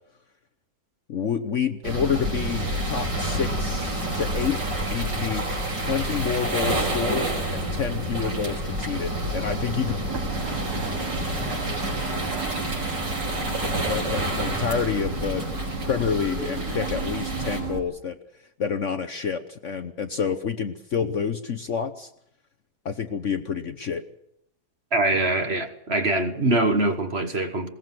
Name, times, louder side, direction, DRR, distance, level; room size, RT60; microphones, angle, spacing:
voice 1, 1.1-4.6 4.8-5.5 5.8-10.0 13.6-15.4 15.8-18.2 18.6-22.1 22.8-24.0, left 6 dB, 50° left, 1.1 m, -28 dB
sound 1, 1.8-17.6, right 1 dB, 75° right, 5.8 m, -28 dB
sound 2, 10.1-17.8, right 6 dB, 55° right, 3.0 m, -35 dB
voice 2, 24.9-27.7, right 2 dB, 35° right, 1.6 m, -23 dB
21.0 x 18.5 x 7.7 m
omnidirectional pair, 1.9 m